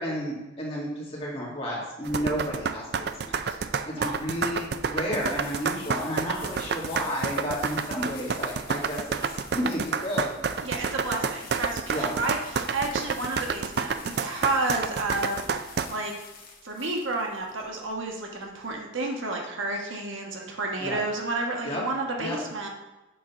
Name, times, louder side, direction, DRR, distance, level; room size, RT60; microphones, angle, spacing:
voice 1, 0.0-3.5 3.9-9.2 9.5-10.3 11.9-12.1 20.8-21.0 21.6-21.8 22.2-22.4, equal, 30° left, -5 dB, 2.2 m, -32 dB
sound 1, 2.0-15.9, right 5 dB, 55° right, 0.4 m, -29 dB
sound 2, 5.0-18.8, left 5 dB, 45° left, 1.4 m, -48 dB
voice 2, 10.6-16.1 16.6-22.7, right 2 dB, 80° right, 1 dB, 1.3 m, -31 dB
7.6 x 4.0 x 5.8 m, 1.0 s
head